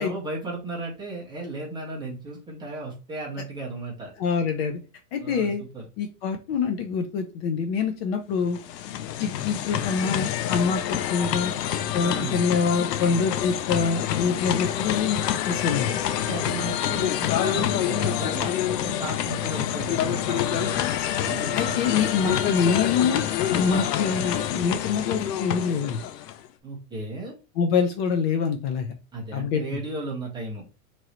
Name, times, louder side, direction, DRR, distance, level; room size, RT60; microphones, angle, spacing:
voice 1, 0.0-4.1 5.2-5.9 12.0-12.5 13.0-13.2 16.1-20.7 21.2-22.1 26.6-27.4 29.1-30.6, right 2 dB, 10° right, -3 dB, 0.6 m, -35 dB
voice 2, 4.2-4.8 5.1-5.6 6.0-8.6 9.2-11.5 11.9-15.9 21.6-26.0 27.6-28.9 29.3-29.8, left 5 dB, 40° left, 5 dB, 0.5 m, -25 dB
sound 1, 8.4-26.5, left 11 dB, 90° left, 0.6 m, -27 dB
Wind instrument woodwind instrument, 20.5-24.5, equal, 55° right, 0.9 m, -43 dB
3.0 x 2.6 x 2.8 m, 0.31 s
supercardioid pair, 140°, 47 cm